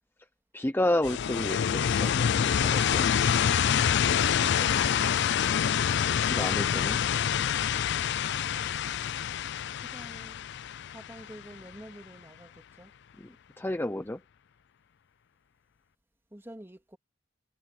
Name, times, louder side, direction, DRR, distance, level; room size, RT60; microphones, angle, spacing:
voice 1, 0.5-3.1 6.3-7.0 13.2-14.2, left 1 dB, 10° left, 0.6 m, -31 dB
sound 1, 1.0-11.7, left 8 dB, 60° left, 0.4 m, -26 dB
voice 2, 4.4-5.4 9.8-10.4 10.9-12.9 16.3-17.0, right 1 dB, 10° right, 2.4 m, -48 dB
head